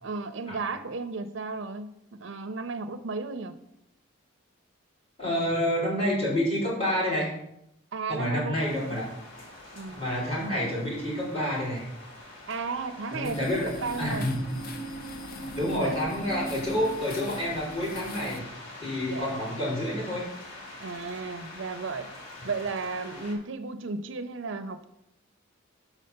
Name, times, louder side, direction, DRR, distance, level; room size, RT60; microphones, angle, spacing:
voice 1, 0.0-3.5 7.9-9.0 9.7-10.0 12.5-13.5 13.8-14.3 15.7-16.0 16.5-16.9 19.1-19.3 20.8-22.1 22.4-24.9, right 4 dB, 60° right, 10 dB, 0.5 m, -34 dB
voice 2, 5.2-7.3 8.1-9.1 9.9-11.9 13.1-13.7 14.0-14.3 15.5-18.4 18.8-20.3, left 1 dB, 30° left, -6 dB, 3.7 m, -28 dB
sound 1, 8.5-23.3, left 2 dB, 85° left, 2.4 m, -45 dB
sound 2, 13.2-18.4, equal, 45° left, 0.6 m, -39 dB
6.2 x 5.5 x 6.6 m, 0.79 s
head